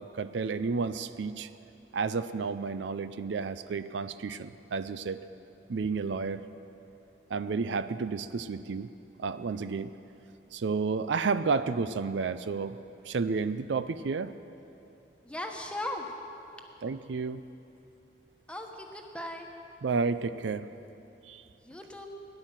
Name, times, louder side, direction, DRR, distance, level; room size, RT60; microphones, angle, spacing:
voice 1, 0.0-1.5 1.9-5.2 5.7-6.4 7.3-8.9 9.2-9.9 10.5-12.8 13.0-14.3 16.8-17.4 19.8-20.7 21.3-21.4, right 4 dB, 75° right, 13 dB, 0.5 m, -31 dB
voice 2, 15.2-16.1 18.5-19.5 21.5-22.1, left 1 dB, 5° left, 2 dB, 1.1 m, -38 dB
17.0 x 11.0 x 7.4 m, 2.8 s
head